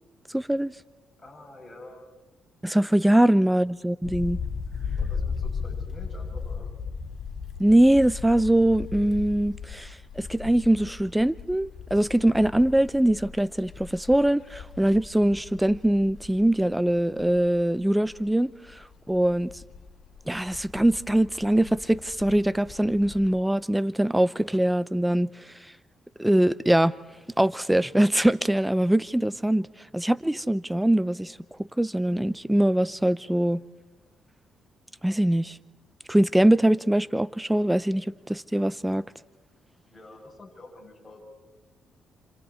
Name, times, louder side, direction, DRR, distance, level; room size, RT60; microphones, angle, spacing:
voice 1, 0.3-0.7 2.6-4.4 7.6-18.5 19.1-19.5 20.3-25.3 26.2-26.9 27.4-29.7 29.9-31.3 31.8-33.6 35.0-35.6 36.1-39.0, right 1 dB, 5° right, 0.7 m, -22 dB
voice 2, 1.2-2.0 4.9-6.7 39.9-41.2, left 2 dB, 20° left, 8.0 m, -47 dB
sound 1, 4.0-18.3 18.6-23.3, left 5 dB, 50° left, 4.1 m, -37 dB
29.0 x 27.0 x 4.4 m
cardioid pair, 90°, 0 cm